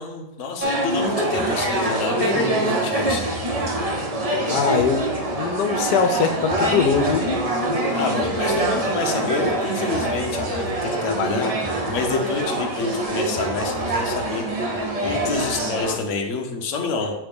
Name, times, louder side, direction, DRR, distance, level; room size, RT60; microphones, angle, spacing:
voice 1, 0.0-3.3 7.9-11.5 11.9-17.1, left 4 dB, 60° left, 3 dB, 1.0 m, -28 dB
sound 1, 0.6-16.0, right 1 dB, 60° right, 0.3 m, -24 dB
voice 2, 4.5-5.0 5.3-7.2, left 6 dB, 90° left, 6 dB, 1.2 m, -21 dB
8.5 x 3.2 x 3.4 m, 1.0 s
omnidirectional pair, 1.7 m